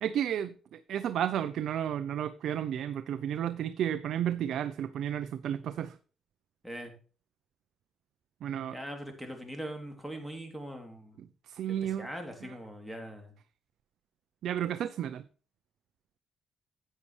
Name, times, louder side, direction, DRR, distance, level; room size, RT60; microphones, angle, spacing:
voice 1, 0.0-6.0 8.4-8.8 11.2-12.1 12.4-12.6 14.4-15.2, right 10 dB, 70° right, 11 dB, 0.5 m, -32 dB
voice 2, 8.7-11.2 11.8-13.3, equal, ahead, 4 dB, 3.0 m, -41 dB
10.5 x 8.4 x 3.2 m, 0.39 s
cardioid pair, 90°, 0 cm